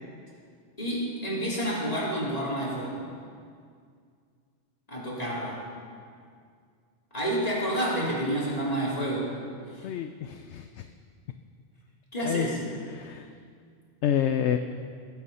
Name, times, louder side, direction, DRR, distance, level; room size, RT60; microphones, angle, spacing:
voice 1, 0.8-3.0 4.9-5.6 7.1-9.3 9.7-9.9 12.1-12.6, right 1 dB, 30° left, -6 dB, 3.5 m, -29 dB
voice 2, 9.8-10.9 12.3-12.5 12.9-13.3 14.0-14.6, left 10 dB, 70° left, 8 dB, 0.8 m, -28 dB
18.5 x 8.4 x 5.6 m, 2.2 s
omnidirectional pair, 1.3 m